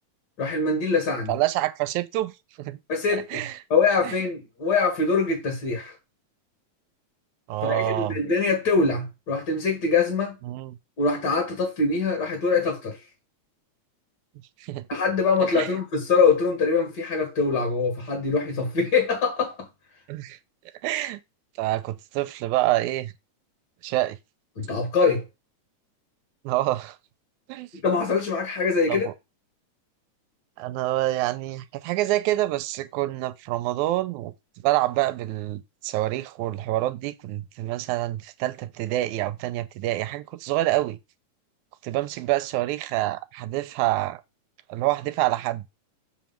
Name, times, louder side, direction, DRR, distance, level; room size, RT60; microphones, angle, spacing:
voice 1, 0.4-1.3 2.9-3.4 3.7-5.9 7.6-10.4 11.0-13.0 14.9-19.7 24.6-25.2 27.8-29.1, left 4 dB, 40° left, 2.0 m, -23 dB
voice 2, 1.3-2.8 3.1-3.5 4.0-4.1 7.5-8.2 10.5-10.8 14.6-14.9 15.6-15.7 20.1-20.4 20.8-21.2 21.6-23.1 23.8-24.2 26.4-27.0 27.5-27.7 28.9-29.1 30.6-34.3 34.6-41.0 41.8-44.2 44.7-45.6, right 16 dB, 85° right, 2.0 m, -27 dB
7.4 x 3.1 x 5.8 m
omnidirectional pair, 3.4 m